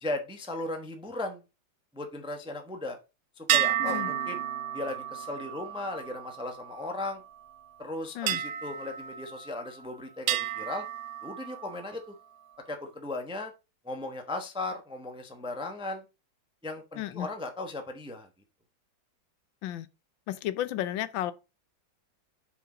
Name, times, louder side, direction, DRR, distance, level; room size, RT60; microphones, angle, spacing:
voice 1, 0.0-1.4 1.9-3.0 3.4-4.4 4.7-7.2 7.8-10.8 11.2-12.1 12.7-13.5 13.8-16.0 16.6-18.3, left 2 dB, 5° right, 0.6 m, -36 dB
sound 1, 3.5-7.2 8.3-9.8 10.3-11.9, right 11 dB, 65° right, 0.9 m, -32 dB
Guitar, 3.8-7.0, right 3 dB, 35° right, 2.2 m, -47 dB
voice 2, 17.0-17.3 19.6-19.9 20.3-21.3, left 12 dB, 80° left, 1.4 m, -33 dB
5.8 x 5.5 x 5.0 m
omnidirectional pair, 2.1 m